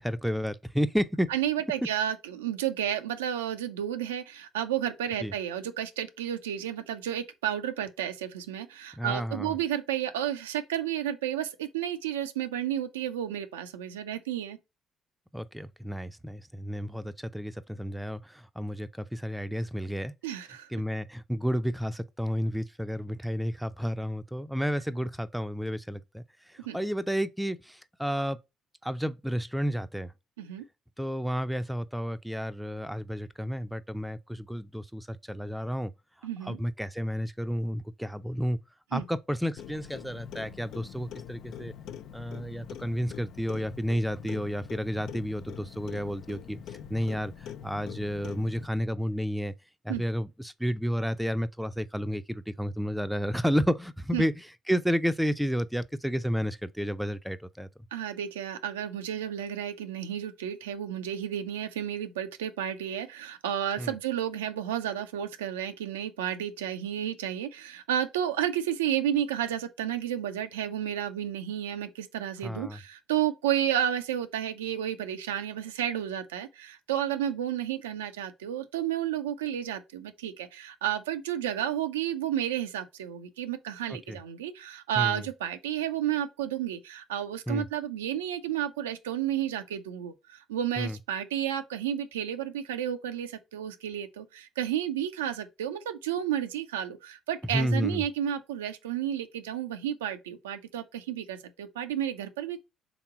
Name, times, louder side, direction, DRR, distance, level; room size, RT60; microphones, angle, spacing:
voice 1, 0.0-1.3 5.2-5.3 9.0-9.5 15.3-20.1 20.7-26.2 26.5-28.4 28.8-30.1 31.0-35.9 36.4-38.6 38.9-41.7 42.1-49.5 49.8-54.3 54.7-57.7 63.8-63.9 72.4-72.8 83.9-84.2 85.0-85.3 87.5-87.7 90.8-91.0 97.5-98.0, equal, 5° right, 0.5 m, -31 dB
voice 2, 1.3-14.6 20.2-20.7 26.6-26.8 30.4-30.6 36.2-36.6 38.9-39.1 49.9-50.0 54.1-54.3 57.9-102.6, right 10 dB, 85° right, 0.4 m, -32 dB
Clock, 39.6-48.7, left 9 dB, 65° left, 0.4 m, -44 dB
3.5 x 3.0 x 4.7 m
hypercardioid pair, 50°, 0 cm